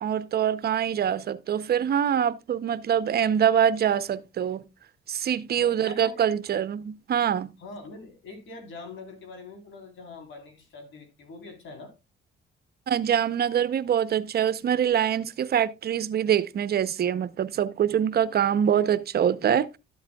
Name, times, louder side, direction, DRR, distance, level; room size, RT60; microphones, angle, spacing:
voice 1, 0.0-4.6 5.1-7.5 12.9-19.8, right 9 dB, 50° right, 0.6 m, -24 dB
voice 2, 5.6-6.2 7.6-11.9, left 3 dB, 75° left, 3.5 m, -43 dB
12.5 x 7.9 x 2.2 m
cardioid pair, 90°, 20 cm